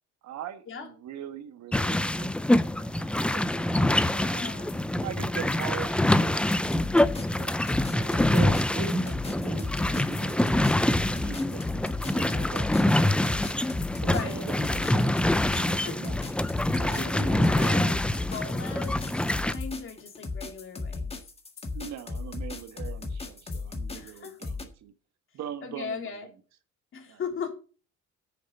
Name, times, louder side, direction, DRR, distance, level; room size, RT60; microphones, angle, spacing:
voice 1, 0.2-3.7 5.0-13.5 14.0-16.3 16.8-17.8 21.7-24.9 25.3-26.3 27.1-27.2, right 10 dB, 65° right, 10 dB, 1.4 m, -42 dB
sound 1, 1.7-19.5, left 1 dB, 5° left, 0.4 m, -25 dB
voice 2, 3.7-4.8 6.5-6.6 14.0-14.5 15.5-16.0 16.9-17.9 18.2-19.1 19.4-21.2 23.9-24.4 25.6-26.2 26.9-27.5, left 5 dB, 45° left, 4 dB, 3.1 m, -38 dB
sound 2, 4.7-5.1 5.4-5.9 6.4-6.8 7.3-7.7 8.2-8.6 9.2-9.6 10.0-10.6 11.0-11.4 11.9-12.4 12.7-13.2 13.8-14.2 14.7-15.0 15.6-16.0 16.5-17.0 17.5-18.0 18.5-18.9 19.5-20.0 20.4-20.9 21.5-21.9 22.6-22.9 23.5-23.8 24.4-24.6, left 8 dB, 60° left, 3.1 m, -54 dB
sound 3, 6.6-24.6, left 3 dB, 20° left, 1.8 m, -36 dB
9.4 x 6.8 x 6.6 m, 0.37 s
cardioid pair, 130°, 30 cm